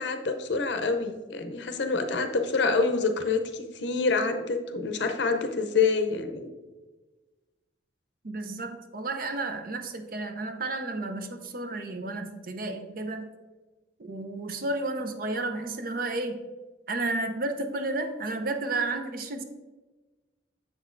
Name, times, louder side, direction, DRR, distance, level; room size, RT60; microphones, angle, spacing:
voice 1, 0.0-6.5, left 4 dB, 70° left, 7 dB, 0.6 m, -27 dB
voice 2, 8.2-13.3 14.0-16.4 16.9-19.4, right 2 dB, 50° right, 7 dB, 0.6 m, -32 dB
7.4 x 6.2 x 2.5 m, 1.2 s
head